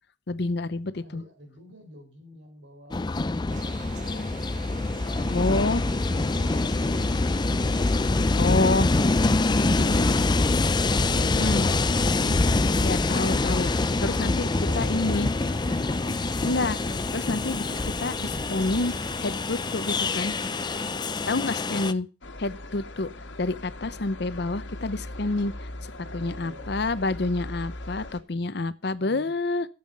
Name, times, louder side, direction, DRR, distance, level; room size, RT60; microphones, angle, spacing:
voice 1, 0.3-1.2 5.3-5.8 8.4-8.9 9.7-10.1 11.2-11.7 12.8-13.7 14.0-14.5 14.7-15.3 16.4-16.8 17.1-17.6 18.0-18.9 19.2-20.3 21.3-22.1 22.4-23.1 23.4-29.7, left 2 dB, 65° left, 15 dB, 0.8 m, -28 dB
voice 2, 0.9-5.8 14.4-15.3 20.9-21.5 26.0-27.0 29.0-29.3, right 1 dB, 85° right, 4 dB, 4.4 m, -49 dB
Train, 2.9-21.9, left 3 dB, 25° left, 0.5 m, -25 dB
sound 1, 3.5-20.9, right 4 dB, 45° right, 1.2 m, -45 dB
sound 2, 22.2-28.2, left 1 dB, 85° left, 1.6 m, -39 dB
12.5 x 8.0 x 5.3 m, 0.35 s
head